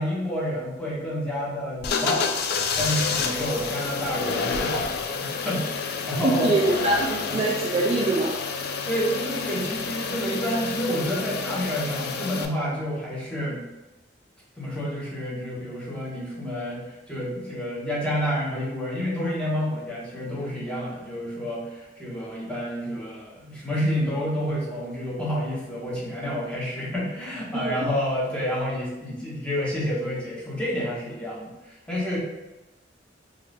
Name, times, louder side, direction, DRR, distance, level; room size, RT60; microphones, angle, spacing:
voice 1, 0.0-2.3 2.8-4.9 5.2-6.5 7.3-7.4 8.9-13.6 14.6-32.2, equal, 5° left, -7 dB, 0.8 m, -29 dB
sound 1, 1.8-12.4, left 5 dB, 60° left, 0.3 m, -29 dB
voice 2, 6.2-8.4 27.5-27.9, right 2 dB, 30° right, -2 dB, 0.3 m, -24 dB
2.5 x 2.4 x 3.3 m, 1.0 s
head